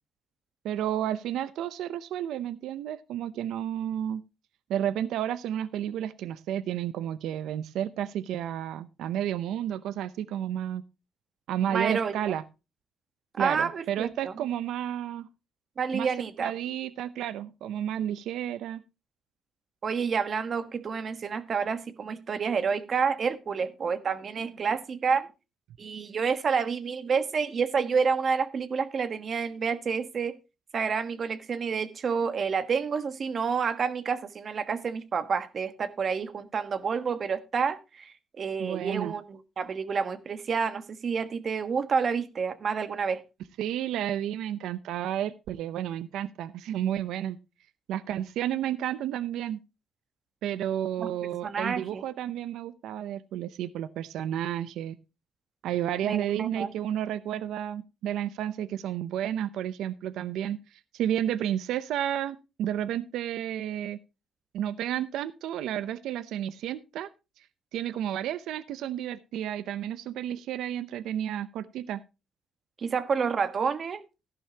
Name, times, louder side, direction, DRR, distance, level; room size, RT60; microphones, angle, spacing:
voice 1, 0.6-4.2 4.7-10.8 11.5-12.4 13.4-15.3 15.9-16.1 16.4-18.8 38.6-39.1 43.6-47.4 47.9-49.6 50.4-55.0 55.6-64.0 64.5-67.1 67.4-67.5 67.7-72.0, right 11 dB, 85° right, 0.6 m, -31 dB
voice 2, 11.7-12.2 13.3-14.3 15.8-16.5 19.8-25.3 25.8-30.3 30.7-43.2 51.0-51.1 51.4-52.0 56.0-56.7 72.8-74.0, right 6 dB, 50° right, 1.3 m, -29 dB
13.5 x 11.5 x 2.9 m
cardioid pair, 90°, 0 cm